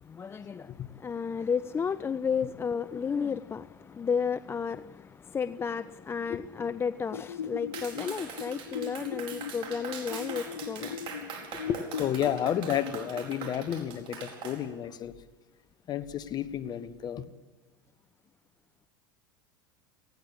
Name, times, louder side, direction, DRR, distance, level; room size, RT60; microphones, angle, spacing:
voice 1, 0.0-11.3, left 6 dB, 20° left, 0.5 m, -33 dB
sound 1, 7.1-12.1, left 8 dB, 85° left, 0.7 m, -39 dB
Clapping, 7.7-14.6, right 6 dB, 50° right, 4.8 m, -41 dB
voice 2, 11.6-15.1 15.9-17.2, left 10 dB, 40° left, 1.3 m, -31 dB
19.0 x 16.0 x 8.5 m
hypercardioid pair, 90°, 11 cm